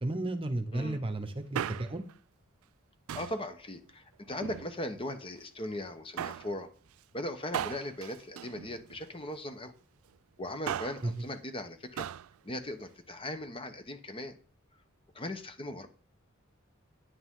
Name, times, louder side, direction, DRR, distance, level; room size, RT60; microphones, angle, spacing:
voice 1, 0.0-2.0 11.0-11.1, right 2 dB, 25° right, 9 dB, 0.9 m, -33 dB
Male speech man speaking, 1.3-2.1 3.1-3.5 4.3-5.1 6.2-6.5 7.5-9.2 10.4-11.1 12.0-12.3 12.6-12.7, right 9 dB, 85° right, 0.3 m, -38 dB
voice 2, 3.1-6.7 7.1-9.7 10.4-12.1 12.4-14.4 15.1-15.9, left 1 dB, 25° left, 8 dB, 1.0 m, -39 dB
9.8 x 8.8 x 3.8 m, 0.40 s
head